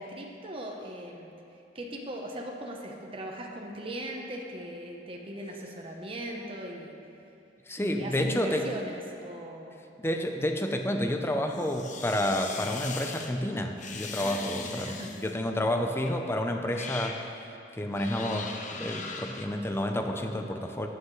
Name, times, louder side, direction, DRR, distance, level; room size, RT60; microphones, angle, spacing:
voice 1, 0.0-1.3 1.7-7.0 7.8-9.8 14.2-15.1, right 1 dB, 30° right, 0 dB, 1.0 m, -39 dB
voice 2, 7.7-8.7 10.0-17.2 17.7-20.9, left 1 dB, 15° left, 4 dB, 0.6 m, -30 dB
sound 1, 11.5-13.3 13.8-15.3 16.0-16.2 16.6-17.2 17.9-19.4, left 5 dB, 45° left, 0.8 m, -40 dB
14.5 x 9.1 x 3.2 m, 2.7 s
head